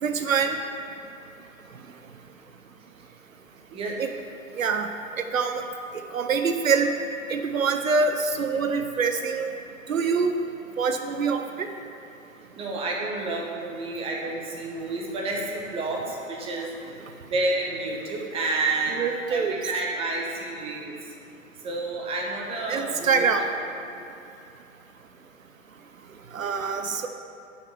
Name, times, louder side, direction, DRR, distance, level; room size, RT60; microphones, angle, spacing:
voice 1, 0.0-0.6 4.0-4.1 4.6-4.9 5.3-5.6 6.1-6.9 7.3-9.5 9.9-10.4 10.8-11.7 19.0-19.5 22.7-23.5 26.3-27.1, right 5 dB, 75° right, 6 dB, 0.7 m, -24 dB
voice 2, 12.5-16.7 17.3-20.9 21.6-23.4, right 2 dB, 15° right, -1 dB, 1.0 m, -30 dB
6.2 x 5.7 x 7.2 m, 2.6 s
figure-of-eight pair, 110°, 41 cm